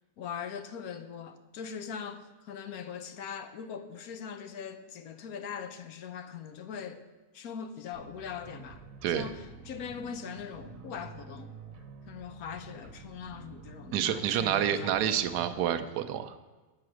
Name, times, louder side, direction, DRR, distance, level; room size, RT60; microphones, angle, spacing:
voice 1, 0.2-7.0 7.3-8.8 9.1-11.5 12.1-15.3, left 7 dB, 70° left, 1.1 m, -41 dB
sound 1, 7.9-15.5, right 5 dB, 60° right, 1.2 m, -49 dB
voice 2, 13.9-16.4, right 10 dB, 90° right, 1.2 m, -28 dB
8.9 x 5.8 x 6.3 m
omnidirectional pair, 1.7 m